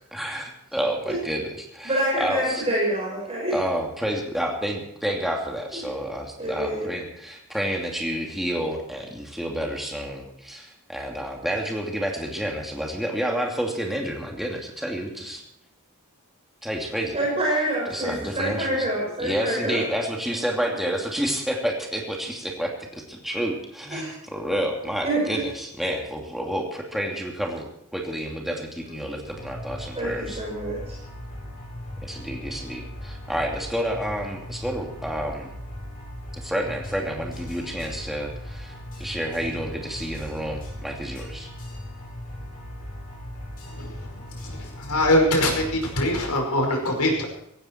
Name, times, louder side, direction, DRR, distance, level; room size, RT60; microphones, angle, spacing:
voice 1, 0.1-2.7 3.5-15.4 16.6-17.2 17.9-18.9 19.2-30.4 32.0-35.5 36.4-38.7 39.0-41.5, equal, ahead, 0 dB, 2.7 m, -29 dB
voice 2, 1.8-3.5 5.7-5.9 6.4-6.9 17.1-19.8 23.9-24.1 25.0-25.4 29.9-31.0, right 1 dB, 30° right, -3 dB, 5.6 m, -26 dB
sound 1, 29.2-46.3, left 1 dB, 40° left, 7.9 m, -38 dB
voice 3, 43.7-44.1 44.4-47.3, left 1 dB, 85° left, 2 dB, 5.3 m, -23 dB
16.5 x 16.0 x 4.5 m, 0.79 s
head